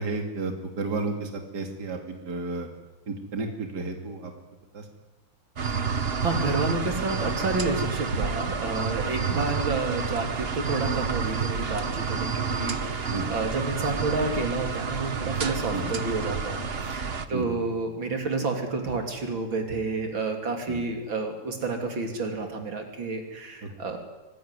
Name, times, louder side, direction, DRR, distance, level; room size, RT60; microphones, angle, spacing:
voice 1, 0.0-2.7 3.1-4.3 4.7-4.9 9.3-9.4 13.1-13.3 15.7-16.0 17.3-17.6 20.7-20.8 23.6-23.7, right 3 dB, 60° right, 4 dB, 3.1 m, -32 dB
sound 1, 5.6-17.3, right 5 dB, 35° right, 1.2 m, -29 dB
voice 2, 5.7-24.0, right 3 dB, 90° right, 4 dB, 3.9 m, -30 dB
25.0 x 19.5 x 9.8 m, 1.1 s
omnidirectional pair, 2.1 m